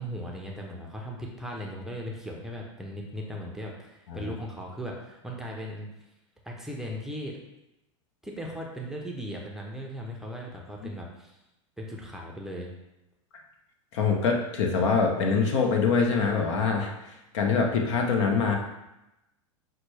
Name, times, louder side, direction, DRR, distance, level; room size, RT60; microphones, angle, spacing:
voice 1, 0.0-5.9 6.4-7.4 8.2-11.4 11.8-12.7, equal, 5° right, -2 dB, 0.6 m, -37 dB
voice 2, 13.9-18.6, left 5 dB, 65° left, 2 dB, 0.8 m, -24 dB
5.8 x 2.2 x 3.3 m, 0.92 s
hypercardioid pair, 105°, 16 cm